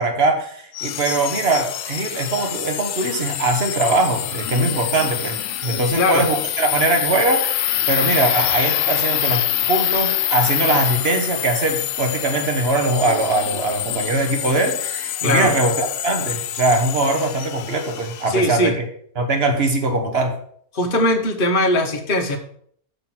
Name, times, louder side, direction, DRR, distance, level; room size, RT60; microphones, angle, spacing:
voice 1, 0.0-18.8 19.2-20.3, right 2 dB, 45° right, 5 dB, 1.5 m, -21 dB
sound 1, 0.7-18.4, left 12 dB, 70° left, 0.9 m, -25 dB
voice 2, 18.3-18.7 20.7-22.4, left 1 dB, 40° left, 3 dB, 1.2 m, -19 dB
6.7 x 5.9 x 6.0 m, 0.63 s
omnidirectional pair, 1.5 m